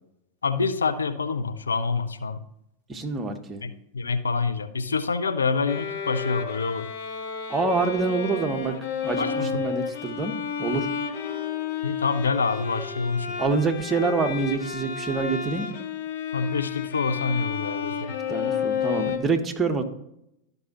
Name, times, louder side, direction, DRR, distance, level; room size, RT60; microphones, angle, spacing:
voice 1, 0.4-2.4 3.6-6.9 9.2-9.5 11.8-13.4 16.3-18.1, left 4 dB, 75° left, 10 dB, 0.5 m, -26 dB
voice 2, 2.9-3.6 7.5-8.7 9.0-10.3 10.6-10.9 13.4-15.7 18.3-19.8, right 4 dB, 20° right, 4 dB, 1.1 m, -26 dB
Bowed string instrument, 5.7-19.2, left 6 dB, 50° left, 0.9 m, -31 dB
12.5 x 5.4 x 2.9 m, 0.81 s
figure-of-eight pair, 90°, 0 cm